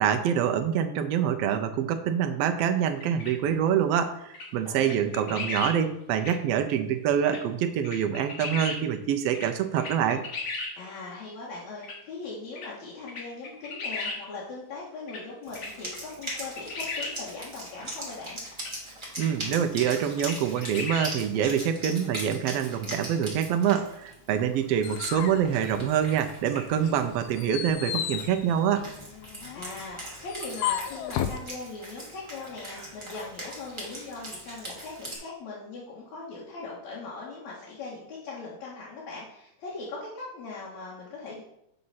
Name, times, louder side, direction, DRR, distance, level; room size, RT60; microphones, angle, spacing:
voice 1, 0.0-10.2 19.2-28.9, right 8 dB, 80° right, 7 dB, 1.4 m, -26 dB
sound 1, 3.0-3.3 4.3-4.5 4.8-5.7 6.2-6.3 7.3-7.4 7.8-8.8 9.3-9.5 9.8-10.7 11.8-12.0 12.6-12.7 13.1-14.2 15.1-15.2 15.6-16.0 16.2-17.1 18.6-18.7 19.2-19.3 19.8-19.9 20.2-21.1, left 3 dB, 50° left, 2.1 m, -35 dB
voice 2, 4.6-5.1 10.7-18.4 29.5-41.4, left 3 dB, 70° left, -5 dB, 2.7 m, -40 dB
Wind instrument woodwind instrument, 15.4-35.2, right 1 dB, 10° right, 1.5 m, -41 dB
sound 2, 24.4-26.4 26.8-31.4, left 10 dB, 90° left, 2.0 m, -34 dB
7.8 x 4.0 x 5.6 m, 0.80 s
omnidirectional pair, 3.3 m